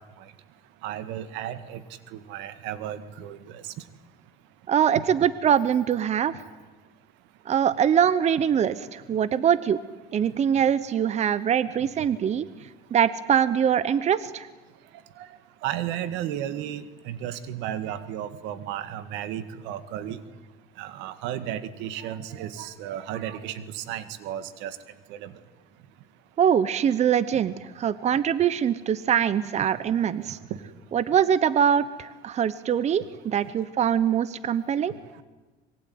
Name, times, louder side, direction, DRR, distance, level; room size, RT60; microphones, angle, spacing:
voice 1, 0.8-1.8 2.1-3.6 15.2-15.3 15.6-20.2 20.8-24.8 25.1-25.3, right 11 dB, 85° right, 13 dB, 2.0 m, -34 dB
voice 2, 4.7-6.3 7.5-9.8 10.1-12.4 12.9-14.5 26.4-30.4 30.9-34.9, right 8 dB, 40° right, 16 dB, 1.0 m, -23 dB
25.5 x 22.0 x 9.5 m, 1.2 s
cardioid pair, 130°, 18 cm